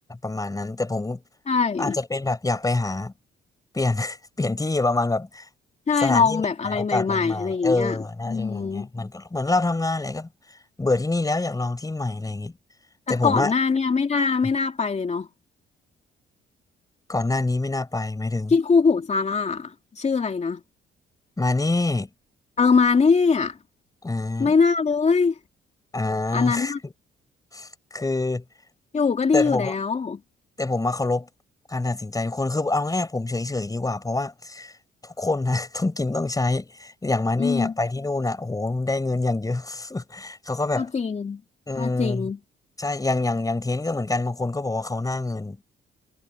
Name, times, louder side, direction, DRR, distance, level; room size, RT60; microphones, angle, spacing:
voice 1, 0.1-1.2 1.8-3.1 3.7-5.5 6.0-10.3 10.8-12.5 13.1-13.5 17.1-18.5 21.4-22.1 24.0-24.5 25.9-26.7 27.5-28.4 29.3-29.7 30.6-31.3 31.7-34.7 35.0-40.9 41.7-42.3 42.8-45.6, left 2 dB, 20° left, 5.2 m, -26 dB
voice 2, 1.5-2.0 5.9-8.9 13.1-15.3 18.5-20.6 22.6-23.6 24.4-25.3 26.3-26.8 28.9-30.2 37.4-37.7 40.7-41.4 41.7-42.4, left 5 dB, 35° left, 2.9 m, -22 dB
cardioid pair, 90°, 20 cm